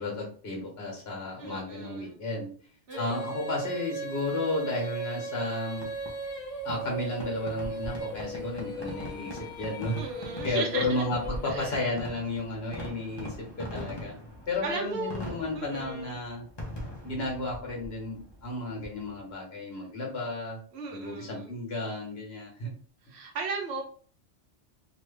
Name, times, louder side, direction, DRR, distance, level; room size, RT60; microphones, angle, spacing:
voice 1, 0.0-2.5 3.0-5.9 6.6-10.0 10.3-14.2 14.5-16.5 17.0-20.6 20.9-22.7, left 2 dB, 60° left, -1 dB, 1.4 m, -33 dB
voice 2, 1.4-2.2 2.9-3.2 9.9-11.1 11.5-11.9 14.6-15.2 15.5-16.2 20.7-21.5 23.1-23.8, right 4 dB, 65° right, 1 dB, 1.0 m, -36 dB
Female singing, 2.9-12.1, right 2 dB, 85° left, 1.2 m, -38 dB
Fireworks, 5.8-19.3, left 1 dB, 25° left, 0.7 m, -42 dB
2.9 x 2.4 x 3.2 m, 0.44 s
omnidirectional pair, 1.2 m